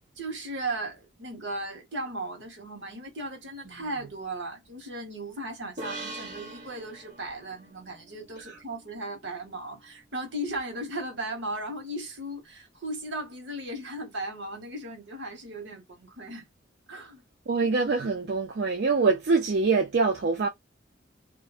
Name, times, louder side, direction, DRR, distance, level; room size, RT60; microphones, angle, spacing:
voice 1, 0.2-16.5 16.9-17.2, right 1 dB, 80° right, 1.2 m, -36 dB
sound 1, 5.8-9.3, right 2 dB, 40° right, 1.1 m, -42 dB
voice 2, 17.5-20.5, right 4 dB, 60° right, 0.4 m, -24 dB
2.5 x 2.0 x 2.4 m
head